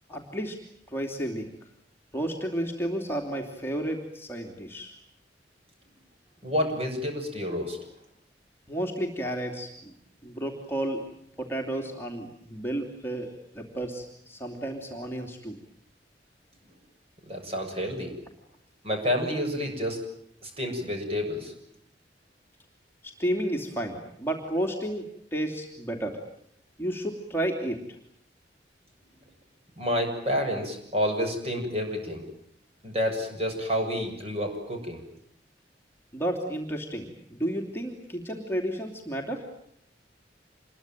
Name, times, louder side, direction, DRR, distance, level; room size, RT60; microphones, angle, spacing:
voice 1, 0.1-0.6 0.9-1.5 2.1-5.0 8.7-9.9 10.2-11.0 11.4-15.6 23.0-26.2 26.8-27.8 36.1-39.5, right 1 dB, 15° left, 1 dB, 2.9 m, -32 dB
voice 2, 6.4-7.8 17.2-18.1 18.8-20.0 20.4-21.5 29.8-32.2 32.8-35.0, equal, 35° right, 4 dB, 7.1 m, -29 dB
27.0 x 22.0 x 9.2 m, 0.71 s
head